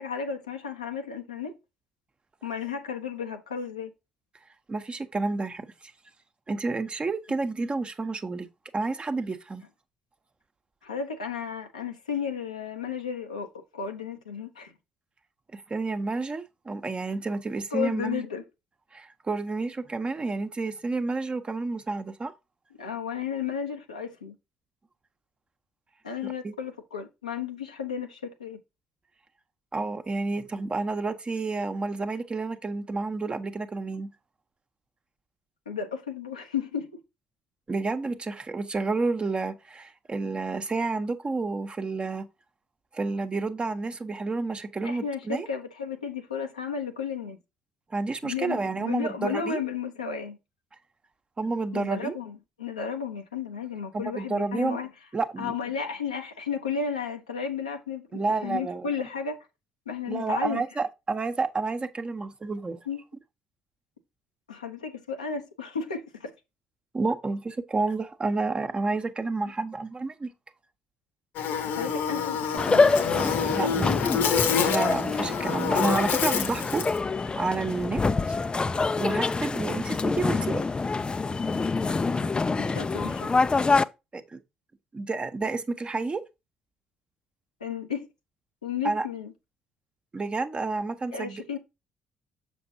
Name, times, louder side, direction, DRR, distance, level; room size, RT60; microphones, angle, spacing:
voice 1, 0.0-1.5 2.4-3.9 10.8-14.7 17.7-18.4 22.8-24.3 26.0-28.6 35.7-36.9 44.8-47.4 48.2-50.4 51.7-54.9 55.4-59.4 59.9-60.6 62.9-63.0 64.5-66.3 71.6-72.9 73.3-74.1 82.6-83.3 87.6-88.1 88.6-89.3 91.1-91.6, left 6 dB, 85° left, 0.9 m, -33 dB
voice 2, 4.7-5.7 6.5-8.5 8.7-9.6 15.5-18.2 18.9-22.3 26.4-26.5 29.7-34.1 37.7-42.3 42.9-45.5 47.9-49.6 51.4-52.2 53.9-54.8 55.1-55.5 58.1-58.9 60.1-62.8 66.9-70.3 73.5-73.9 74.6-77.1 77.4-78.0 79.0-80.6 84.1-84.4 84.9-86.2 88.8-89.1 90.1-91.6, right 3 dB, 30° right, 1.0 m, -30 dB
Buzz, 71.4-77.0, left 7 dB, 65° left, 1.1 m, -28 dB
sound 1, 72.6-83.8, left 4 dB, 25° left, 0.5 m, -26 dB
6.9 x 6.3 x 2.8 m
figure-of-eight pair, 45°, 4 cm